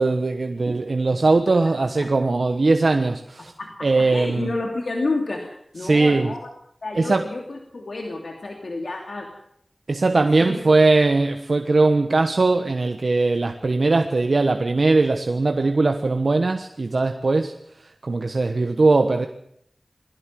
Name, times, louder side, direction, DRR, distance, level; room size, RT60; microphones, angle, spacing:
voice 1, 0.0-3.5 3.8-4.5 5.8-6.3 6.9-7.3 9.9-17.5 17.8-19.3, right 3 dB, 75° right, 7 dB, 1.2 m, -20 dB
voice 2, 3.6-6.5 6.8-9.3 10.2-10.6, left 2 dB, 85° left, 2 dB, 2.8 m, -30 dB
21.5 x 16.0 x 7.6 m, 0.72 s
wide cardioid pair, 40°, 0 cm